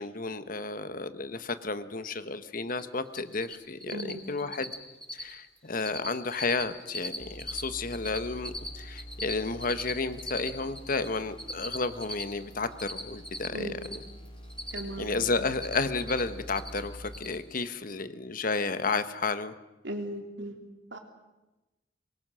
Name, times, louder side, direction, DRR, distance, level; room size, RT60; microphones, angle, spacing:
voice 1, 0.0-4.7 5.1-14.0 15.0-19.5, left 3 dB, 50° left, 11 dB, 1.3 m, -32 dB
Cricket, 2.7-2.8 3.1-3.5 3.8-4.1 4.4-4.8 5.0-5.3 5.6-6.1 6.3-7.6 7.9-11.1 11.4-14.0 14.3-15.1 15.3-16.2 16.5-16.8 17.1-17.4, left 1 dB, 5° left, 5.7 m, -38 dB
voice 2, 3.9-4.2 13.5-13.8 14.7-15.1 19.8-20.6 20.9-21.0, right 1 dB, 80° right, 4 dB, 3.4 m, -37 dB
sound 1, 7.2-17.2, equal, 30° left, 3.2 m, -46 dB
24.5 x 22.0 x 6.4 m, 1.1 s
head